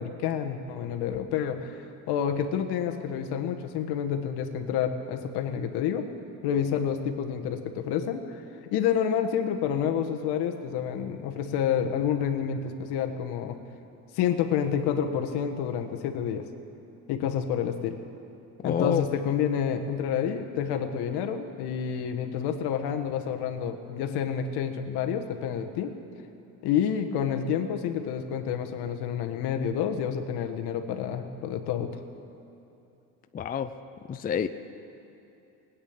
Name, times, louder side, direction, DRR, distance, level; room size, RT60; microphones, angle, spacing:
voice 1, 0.0-6.0 6.4-8.4 8.7-13.6 14.1-16.4 17.1-18.0 18.6-25.9 26.6-31.9, left 8 dB, 65° left, 6 dB, 1.4 m, -29 dB
voice 2, 18.6-19.0 33.3-33.7 34.1-34.5, left 8 dB, 20° left, 10 dB, 0.5 m, -27 dB
18.5 x 8.7 x 8.8 m, 2.8 s
supercardioid pair, 100°, 42 cm